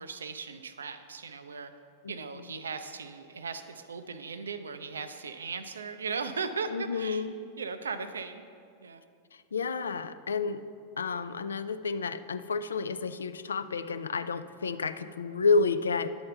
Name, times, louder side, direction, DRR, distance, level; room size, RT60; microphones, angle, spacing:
voice 1, 0.0-1.7 2.1-7.2 7.6-8.4 8.8-9.0, right 5 dB, 70° right, 10 dB, 0.4 m, -37 dB
voice 2, 6.7-7.3 9.3-10.6 11.0-16.1, left 4 dB, 70° left, 12 dB, 0.3 m, -30 dB
10.5 x 4.3 x 5.5 m, 2.4 s
figure-of-eight pair, 90°, 0 cm